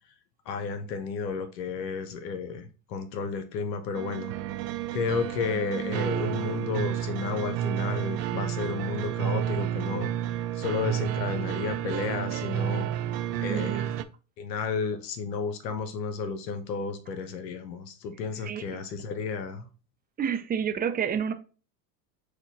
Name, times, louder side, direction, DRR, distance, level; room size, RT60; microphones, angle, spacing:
voice 1, 0.5-4.3 4.9-10.1 10.5-12.9 13.4-13.9 14.4-19.7, left 5 dB, 90° left, 0.7 m, -32 dB
sound 1, 3.9-14.0, right 11 dB, 85° right, 0.5 m, -30 dB
voice 2, 13.5-13.9 18.4-18.8 20.2-21.3, right 7 dB, 20° right, 0.5 m, -29 dB
4.7 x 2.2 x 4.0 m
hypercardioid pair, 90°, 49 cm